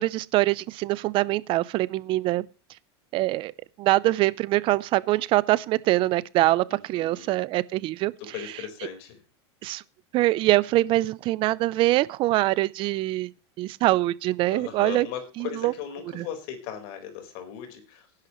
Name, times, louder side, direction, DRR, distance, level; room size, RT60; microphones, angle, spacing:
voice 1, 0.0-2.5 3.1-3.5 3.8-8.1 9.6-9.8 10.1-13.3 13.6-15.1 15.4-15.7 16.1-16.3, right 17 dB, 35° right, 0.5 m, -24 dB
voice 2, 6.7-7.3 8.2-9.2 14.5-18.1, left 9 dB, 55° left, 4.4 m, -38 dB
18.5 x 10.5 x 3.1 m
supercardioid pair, 140°, 14 cm